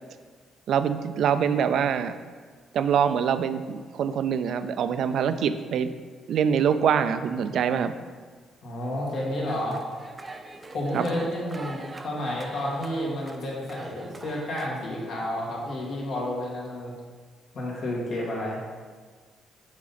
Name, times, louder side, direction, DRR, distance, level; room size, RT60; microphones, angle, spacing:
voice 1, 0.7-2.1 2.7-5.9 6.3-7.9 10.9-11.1, right 7 dB, 70° right, 11 dB, 0.4 m, -24 dB
voice 2, 8.6-9.9 10.7-16.9 17.5-18.6, left 1 dB, 70° left, -4 dB, 1.8 m, -31 dB
sound 1, 9.5-14.7, right 2 dB, 25° right, 0.5 m, -43 dB
7.3 x 4.0 x 4.0 m, 1.5 s
cardioid pair, 90°, 0 cm